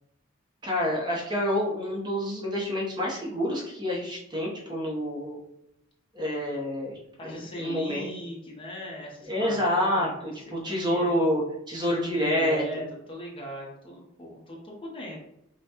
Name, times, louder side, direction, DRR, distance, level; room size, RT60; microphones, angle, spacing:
voice 1, 0.6-5.4 6.1-8.1 9.3-11.4 11.7-12.8, equal, 20° right, -3 dB, 0.8 m, -28 dB
voice 2, 7.2-11.2 11.9-15.2, left 1 dB, 25° left, -3 dB, 0.9 m, -39 dB
5.3 x 2.2 x 2.9 m, 0.80 s
head